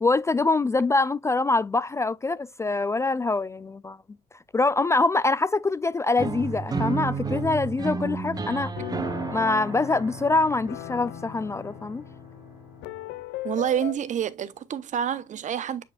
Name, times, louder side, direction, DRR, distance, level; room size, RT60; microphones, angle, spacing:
voice 1, 0.0-4.0 4.5-8.7 9.3-12.0, left 3 dB, 15° left, 0.4 m, -24 dB
sound 1, 6.2-12.1, right 4 dB, 25° right, 1.0 m, -32 dB
sound 2, 8.0-13.9, left 15 dB, 90° left, 0.7 m, -39 dB
voice 2, 13.4-15.8, right 9 dB, 45° right, 0.8 m, -28 dB
8.3 x 5.0 x 2.4 m
cardioid pair, 110°, 17 cm